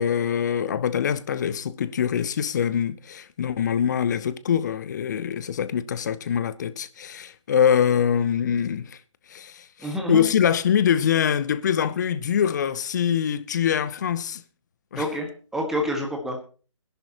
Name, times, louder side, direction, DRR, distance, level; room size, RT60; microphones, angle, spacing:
voice 1, 0.0-9.0 9.3-14.4 14.9-15.0, left 8 dB, 35° left, 0.8 m, -24 dB
voice 2, 9.8-10.2 14.9-16.4, equal, ahead, 1.7 m, -28 dB
20.5 x 11.0 x 2.9 m
figure-of-eight pair, 145°, 17 cm